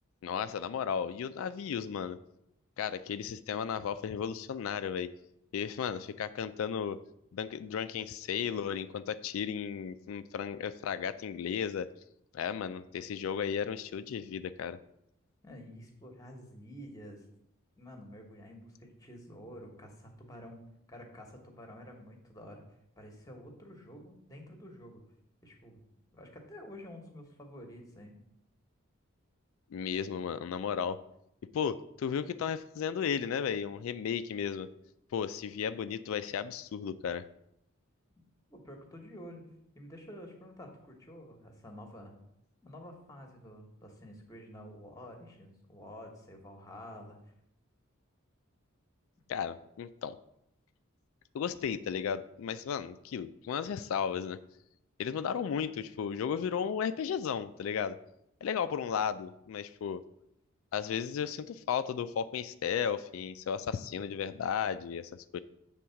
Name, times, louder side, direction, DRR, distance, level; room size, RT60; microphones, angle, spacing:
voice 1, 0.2-2.2 2.8-5.1 5.5-7.0 7.3-11.9 12.3-14.8 29.7-31.0 31.5-34.7 35.1-37.3 49.3-50.2 51.3-54.4 55.0-58.0 58.4-60.0 60.7-65.4, left 7 dB, 70° left, 12 dB, 0.3 m, -34 dB
voice 2, 15.4-17.2 17.8-20.6 20.9-22.6 23.0-25.0 25.4-25.8 26.1-28.1 38.5-39.4 39.7-42.1 42.6-47.2, equal, 15° left, 2 dB, 1.1 m, -49 dB
7.7 x 3.6 x 5.7 m, 0.79 s
head